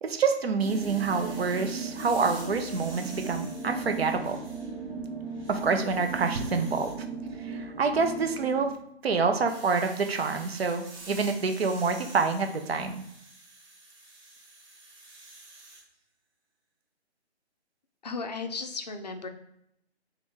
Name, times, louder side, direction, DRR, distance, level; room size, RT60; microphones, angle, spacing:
voice 1, 0.0-4.4 5.5-6.9 7.4-8.7 9.0-13.0, right 4 dB, 65° right, 6 dB, 0.7 m, -27 dB
sound 1, 0.6-4.9 5.3-7.0 9.5-15.8, right 2 dB, 20° right, 0.9 m, -48 dB
sound 2, 0.6-8.7, right 4 dB, 80° right, 1.3 m, -37 dB
voice 2, 18.0-19.3, left 4 dB, 40° left, 6 dB, 0.4 m, -35 dB
3.1 x 3.0 x 3.5 m, 0.76 s
hypercardioid pair, 160°, 34 cm